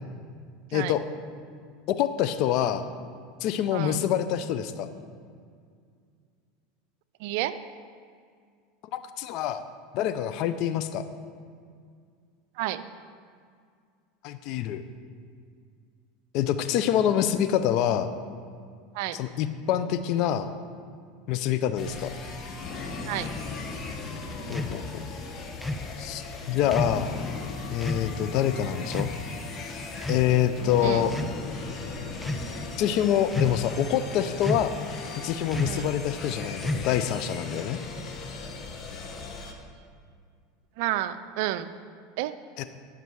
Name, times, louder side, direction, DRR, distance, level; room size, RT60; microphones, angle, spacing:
voice 1, 0.7-1.0 1.9-2.9 3.4-4.9 8.9-9.6 9.9-11.0 14.2-14.8 16.3-18.1 19.1-20.5 21.3-22.1 24.5-25.0 26.0-27.1 27.7-29.1 30.1-31.1 32.8-34.7 35.2-37.8 42.6-42.7, left 10 dB, 60° left, 11 dB, 0.5 m, -26 dB
voice 2, 3.7-4.0 7.2-7.5 12.6-12.8 18.9-19.2 23.1-23.3 30.8-31.1 35.6-35.9 40.8-41.8 42.2-42.3, right 14 dB, 70° right, 13 dB, 0.4 m, -30 dB
sound 1, 21.8-39.5, left 4 dB, 35° left, 1.1 m, -38 dB
sound 2, 24.5-24.8 25.6-25.9 26.7-27.0 27.8-28.1 28.9-29.2 30.0-30.5 31.1-31.4 32.1-32.5 33.3-33.7 34.4-34.8 35.5-35.9 36.6-37.1, left 1 dB, 5° left, 0.5 m, -31 dB
11.0 x 5.3 x 4.6 m, 2.1 s
hypercardioid pair, 95°, 0 cm